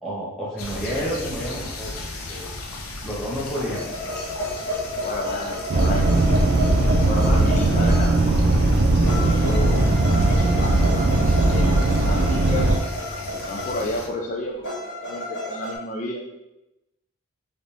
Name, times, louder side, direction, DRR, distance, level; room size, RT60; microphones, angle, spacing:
voice 1, 0.0-1.9 2.3-2.5 3.0-3.9, equal, ahead, -7 dB, 1.2 m, -29 dB
sound 1, 0.6-14.1, left 2 dB, 75° left, 0.6 m, -36 dB
sound 2, 3.7-8.4 9.1-13.9 14.6-15.8, left 1 dB, 55° left, 1.3 m, -31 dB
voice 2, 5.0-6.1 7.0-8.2 8.9-11.7 12.0-12.8 13.5-14.7 15.0-16.2, left 1 dB, 35° left, -1 dB, 0.3 m, -32 dB
sound 3, 5.7-12.8, right 2 dB, 55° right, 0.4 m, -19 dB
4.1 x 2.6 x 3.4 m, 0.94 s
head